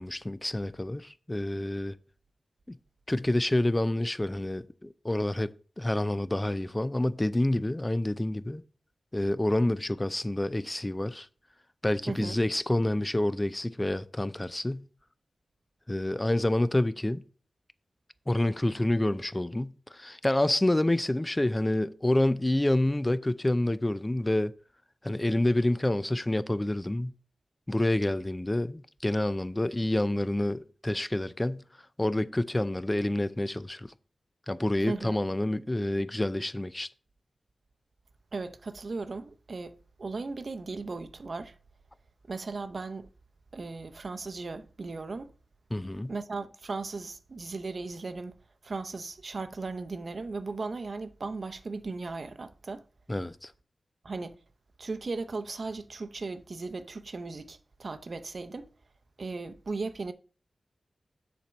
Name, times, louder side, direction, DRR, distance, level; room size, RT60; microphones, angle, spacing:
voice 1, 0.0-2.0 3.1-8.6 9.1-11.3 11.8-14.9 15.9-17.3 18.3-24.5 25.0-27.1 27.7-31.7 32.0-33.9 34.5-36.9 45.7-46.1 53.1-53.5, left 1 dB, 20° left, 0.5 m, -28 dB
voice 2, 12.1-12.4 34.9-35.2 38.3-41.5 42.3-43.1 43.5-45.3 46.1-48.4 48.6-52.8 54.0-54.4 54.8-58.7 59.2-60.1, right 3 dB, 60° right, 0.7 m, -37 dB
7.0 x 4.4 x 6.3 m
wide cardioid pair, 70°, 0 cm